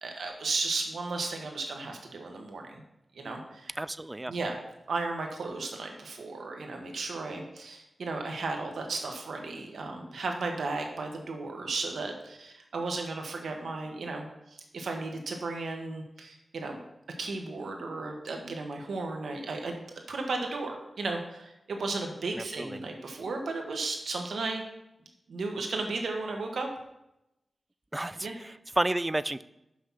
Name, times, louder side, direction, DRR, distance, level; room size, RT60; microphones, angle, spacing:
voice 1, 0.0-2.8 3.1-3.8 4.3-4.6 4.9-16.8 17.2-24.6 25.3-26.7 28.2-28.4, right 3 dB, 90° right, 3 dB, 1.3 m, -35 dB
voice 2, 3.8-4.3 22.4-22.8 27.9-29.4, right 1 dB, 20° right, 16 dB, 0.3 m, -31 dB
6.4 x 5.6 x 6.1 m, 0.89 s
wide cardioid pair, 80°, 0 cm